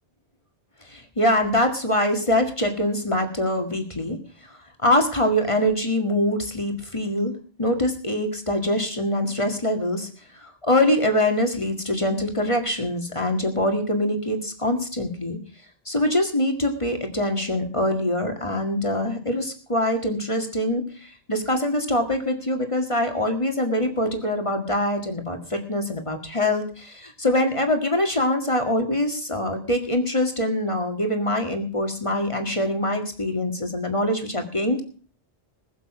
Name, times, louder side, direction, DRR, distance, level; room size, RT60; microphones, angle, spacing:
voice 1, 0.9-4.2 4.8-7.3 7.6-10.1 10.4-15.4 15.9-34.8, left 1 dB, 30° left, 4 dB, 2.1 m, -24 dB
20.5 x 7.3 x 6.0 m, 0.42 s
omnidirectional pair, 1.1 m